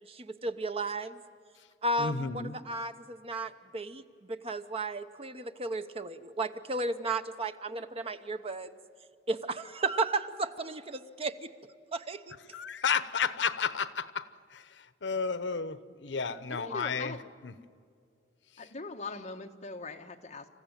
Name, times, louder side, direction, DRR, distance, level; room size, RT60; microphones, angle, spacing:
voice 1, 0.1-1.2 1.8-8.7 9.3-11.5 11.9-12.4, right 2 dB, 35° right, 9 dB, 1.0 m, -34 dB
voice 2, 2.0-2.6 12.5-17.1 17.4-17.5, left 5 dB, 80° left, 14 dB, 0.9 m, -32 dB
voice 3, 16.5-17.2 18.6-20.5, left 3 dB, 40° left, 3 dB, 1.6 m, -41 dB
28.0 x 15.0 x 9.1 m, 2.2 s
head